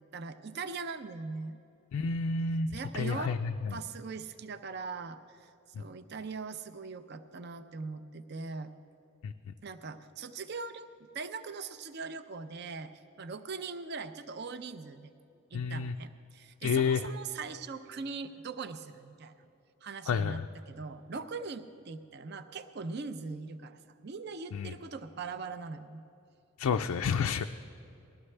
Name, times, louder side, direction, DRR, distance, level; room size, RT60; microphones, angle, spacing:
voice 1, 0.0-1.6 2.7-3.4 3.7-5.5 5.8-8.7 9.6-12.9 13.2-15.1 15.5-19.5 19.8-26.0, right 4 dB, 45° right, 10 dB, 0.5 m, -41 dB
voice 2, 1.9-3.8 9.2-9.3 15.5-15.9 16.6-17.1 20.1-20.5 24.5-24.7 26.6-27.4, left 5 dB, 90° left, 6 dB, 0.4 m, -30 dB
19.5 x 13.0 x 3.3 m, 2.7 s
head